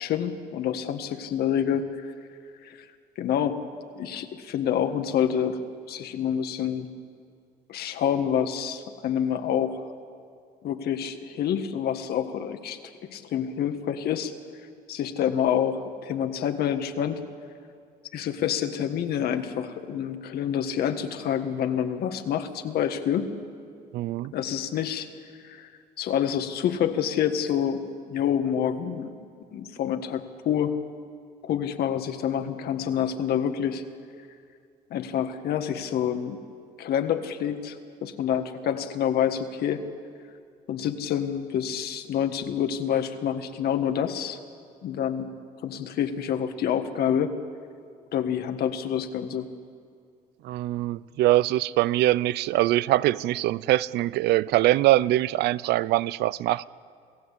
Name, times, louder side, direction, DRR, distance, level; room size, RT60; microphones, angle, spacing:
voice 1, 0.0-1.9 2.6-2.8 3.2-3.6 4.0-5.6 5.9-6.9 7.7-9.9 10.6-14.3 14.9-17.2 18.1-23.3 24.3-25.1 25.4-25.7 26.0-29.1 29.5-30.8 31.4-33.8 34.9-36.4 36.8-37.8 38.0-39.8 40.7-44.4 44.8-45.3 45.6-47.4 48.1-49.5, left 9 dB, 70° left, 8 dB, 1.7 m, -27 dB
voice 2, 23.9-24.3 50.4-56.6, right 15 dB, 80° right, 19 dB, 0.5 m, -23 dB
28.0 x 16.5 x 8.4 m, 2.3 s
cardioid pair, 110°, 17 cm